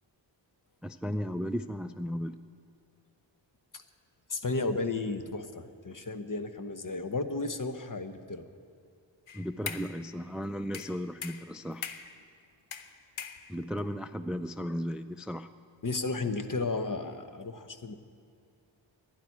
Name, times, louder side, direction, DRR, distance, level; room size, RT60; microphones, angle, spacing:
voice 1, 0.8-2.4 9.3-11.9 13.5-15.5, equal, ahead, 11 dB, 0.4 m, -35 dB
voice 2, 4.3-8.4 15.8-18.0, left 3 dB, 40° left, 8 dB, 1.1 m, -33 dB
sound 1, 9.3-10.0 10.7-12.2 12.7-13.8, left 7 dB, 85° left, 0.9 m, -41 dB
12.5 x 10.5 x 9.7 m, 2.4 s
wide cardioid pair, 50°, 47 cm